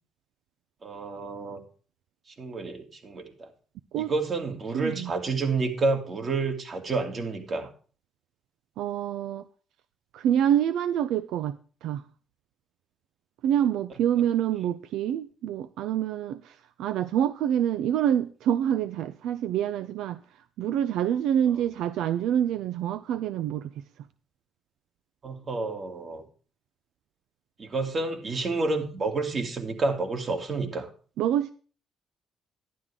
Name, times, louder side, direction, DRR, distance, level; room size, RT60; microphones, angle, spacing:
voice 1, 0.8-1.6 2.4-3.5 4.0-7.7 21.5-21.6 25.2-26.2 27.6-30.9, right 3 dB, 45° right, 2.7 m, -29 dB
voice 2, 4.7-5.1 8.8-9.5 10.1-11.6 11.8-12.0 13.4-20.2 20.6-23.7 31.2-31.5, right 10 dB, 80° right, 0.4 m, -26 dB
11.5 x 10.0 x 3.6 m
supercardioid pair, 75°, 0 cm